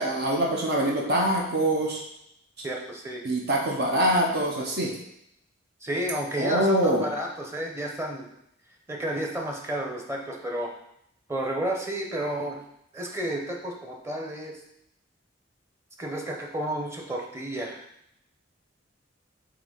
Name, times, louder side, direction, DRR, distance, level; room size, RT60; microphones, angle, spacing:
voice 1, 0.0-2.0 3.2-4.9 6.4-7.1, right 1 dB, 55° right, -1 dB, 0.8 m, -24 dB
voice 2, 2.6-3.2 5.8-8.3 8.9-10.7 11.3-12.6 12.9-14.6 16.0-17.8, right 1 dB, 15° right, 0 dB, 0.9 m, -31 dB
7.8 x 3.0 x 3.9 m, 0.76 s
head